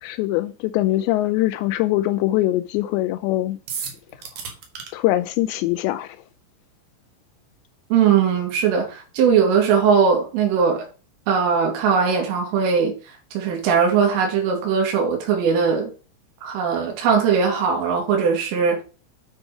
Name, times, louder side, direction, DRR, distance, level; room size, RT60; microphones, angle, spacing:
voice 1, 0.0-3.6 4.9-6.2, left 16 dB, 85° left, 2.5 m, -22 dB
sound 1, 3.7-4.9, right 6 dB, 55° right, 2.4 m, -32 dB
voice 2, 7.9-10.9 11.3-13.0 13.3-15.9 16.4-18.8, right 6 dB, 85° right, 4.8 m, -19 dB
9.6 x 5.1 x 4.9 m
omnidirectional pair, 5.6 m